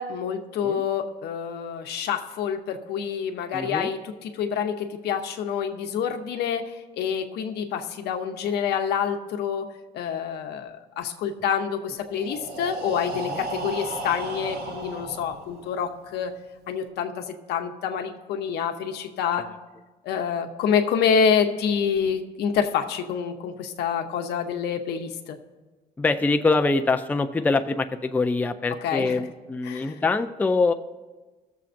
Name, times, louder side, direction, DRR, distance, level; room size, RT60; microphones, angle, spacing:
voice 1, 0.0-9.7 9.9-16.3 16.7-19.5 20.0-25.4 28.8-29.2 29.6-30.0, left 7 dB, 75° left, 5 dB, 0.8 m, -27 dB
voice 2, 3.5-3.9 26.0-30.7, left 3 dB, 10° left, 7 dB, 0.4 m, -24 dB
Breathing, 12.0-15.9, right 2 dB, 70° right, 1.0 m, -34 dB
19.0 x 7.1 x 2.6 m, 1.3 s
cardioid pair, 110°, 17 cm